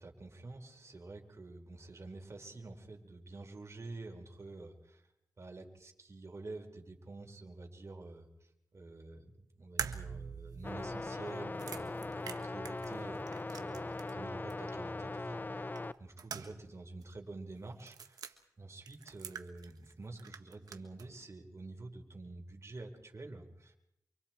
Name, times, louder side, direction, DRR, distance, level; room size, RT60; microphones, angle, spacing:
voice 1, 0.0-5.0 5.4-8.3 8.7-23.7, right 2 dB, 50° right, 2 dB, 4.5 m, -48 dB
sound 1, 9.8-14.2 14.5-14.6 15.8-16.8 17.0-17.1 17.8-18.3 18.9-19.9 20.2-21.1, right 6 dB, 85° right, 1.4 m, -44 dB
sound 2, 10.6-15.9, left 2 dB, 30° left, 0.7 m, -40 dB
28.5 x 24.5 x 4.5 m, 0.80 s
cardioid pair, 60°, 6 cm